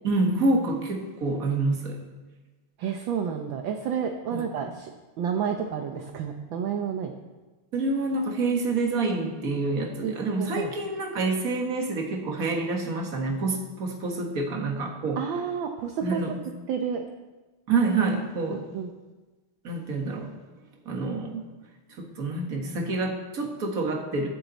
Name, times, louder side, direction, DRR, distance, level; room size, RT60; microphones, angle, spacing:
voice 1, 0.0-2.0 4.3-4.4 7.7-15.2 16.0-16.3 17.7-18.7 19.6-20.3 20.9-21.4 22.0-24.3, right 3 dB, 40° right, 2 dB, 1.9 m, -27 dB
voice 2, 2.8-4.9 5.2-7.1 10.0-10.7 15.2-16.2 16.7-17.0 18.5-18.9, right 7 dB, 65° right, 4 dB, 1.5 m, -30 dB
22.0 x 7.4 x 4.1 m, 1.2 s
omnidirectional pair, 2.4 m